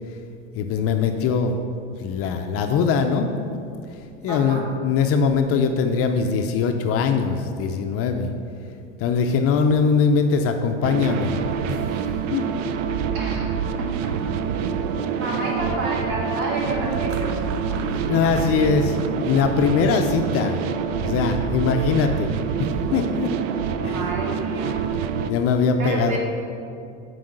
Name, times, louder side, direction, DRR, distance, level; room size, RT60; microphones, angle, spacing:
voice 1, 0.6-1.6 2.0-3.5 4.2-8.3 9.0-11.4 11.7-11.8 12.3-12.5 17.7-20.6 21.0-23.3 23.8-24.0 25.2-26.2, left 5 dB, 40° left, 6 dB, 0.5 m, -22 dB
voice 2, 4.3-4.7 13.1-14.1 15.2-18.0 18.4-18.6 23.8-24.8 25.8-26.2, right 1 dB, 60° right, -1 dB, 1.8 m, -30 dB
sound 1, 10.8-25.3, right 7 dB, 85° right, 0.6 m, -26 dB
5.9 x 4.8 x 6.4 m, 2.5 s
supercardioid pair, 130°, 37 cm